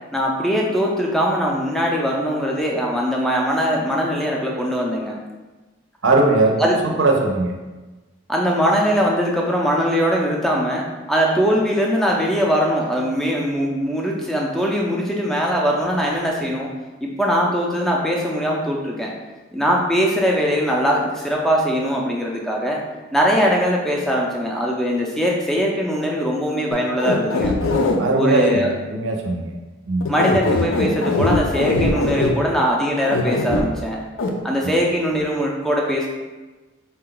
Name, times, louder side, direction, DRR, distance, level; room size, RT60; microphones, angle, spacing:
voice 1, 0.1-5.2 6.6-6.8 8.3-16.7 17.0-19.1 19.5-22.8 23.1-27.6 28.2-28.7 30.1-34.0 34.4-36.1, equal, ahead, -2 dB, 0.4 m, -21 dB
voice 2, 6.0-7.6 28.0-29.5 29.9-30.1, right 2 dB, 65° right, 1 dB, 0.6 m, -19 dB
sound 1, 26.7-28.0 30.0-32.3 33.1-33.6 34.2-34.3, left 2 dB, 75° left, 0.5 m, -20 dB
4.2 x 2.2 x 3.8 m, 1.2 s
head